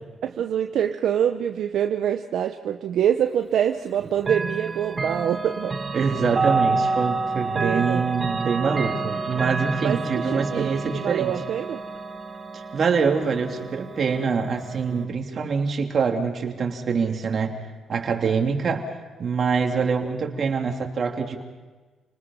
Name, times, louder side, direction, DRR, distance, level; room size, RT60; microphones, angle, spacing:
voice 1, 0.2-5.8 7.5-8.0 9.8-11.8, right 9 dB, 70° right, 6 dB, 0.9 m, -25 dB
Chime / Clock, 4.2-15.0, right 3 dB, 30° right, 1.7 m, -29 dB
voice 2, 5.9-11.3 12.5-17.6 17.9-18.9 19.2-21.5, right 5 dB, 50° right, 2 dB, 3.1 m, -25 dB
29.5 x 19.5 x 5.6 m, 1.3 s
cardioid pair, 90°, 0 cm